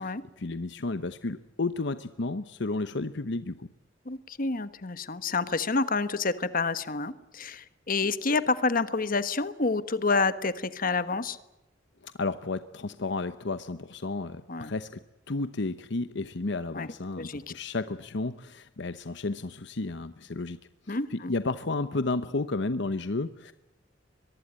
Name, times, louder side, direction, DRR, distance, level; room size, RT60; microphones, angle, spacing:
voice 1, 0.0-3.7 12.0-15.0 15.3-20.6 20.9-23.5, left 3 dB, 65° left, 12 dB, 0.9 m, -32 dB
voice 2, 4.1-11.4 14.5-14.7 16.7-16.9 17.2-17.4 20.9-21.3, left 3 dB, 50° left, 13 dB, 1.3 m, -28 dB
24.0 x 23.0 x 8.9 m, 0.95 s
head